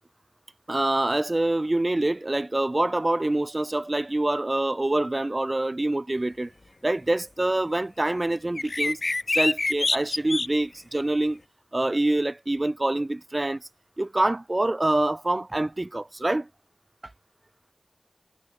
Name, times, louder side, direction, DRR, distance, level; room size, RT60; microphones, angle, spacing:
voice 1, 0.7-6.5 6.8-9.0 9.3-11.4 11.7-13.7 14.0-16.5, right 2 dB, 40° right, 1.1 m, -25 dB
sound 1, 8.6-10.5, left 3 dB, 70° left, 1.3 m, -25 dB
wide cardioid pair, 55°, 0 cm